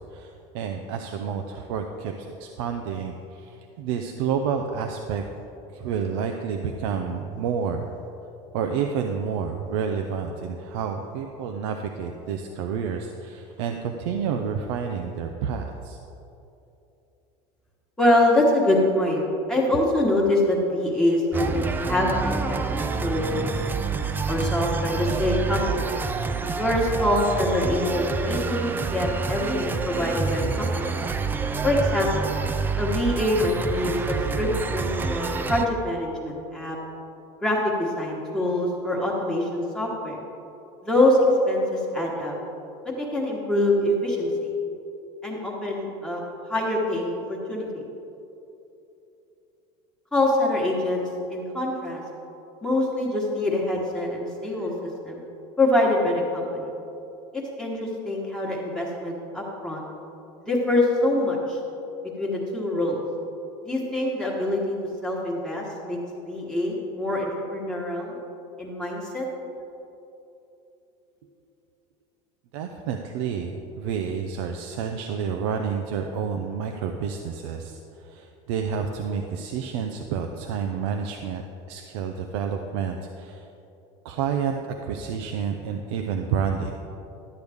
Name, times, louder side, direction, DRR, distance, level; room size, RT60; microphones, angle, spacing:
voice 1, 0.0-5.2 5.7-7.9 8.5-16.0 72.5-81.4 81.7-83.5 84.0-84.6 84.8-86.7, right 7 dB, 80° right, 4 dB, 0.6 m, -29 dB
voice 2, 18.0-19.2 19.5-23.5 24.3-25.6 25.9-26.0 26.6-30.9 31.6-32.3 32.8-36.8 37.4-40.2 40.8-42.3 42.8-44.5 45.2-46.2 46.5-47.8 50.1-52.0 52.6-55.2 55.6-56.7 57.3-59.8 60.4-61.6 62.2-63.0 63.6-64.8 65.0-66.0 66.2-68.2 68.6-69.2, left 1 dB, 5° left, -4 dB, 1.3 m, -24 dB
sound 1, 21.3-35.7, right 4 dB, 15° right, 0.3 m, -28 dB
12.0 x 7.9 x 3.5 m, 2.9 s
supercardioid pair, 145°, 15 cm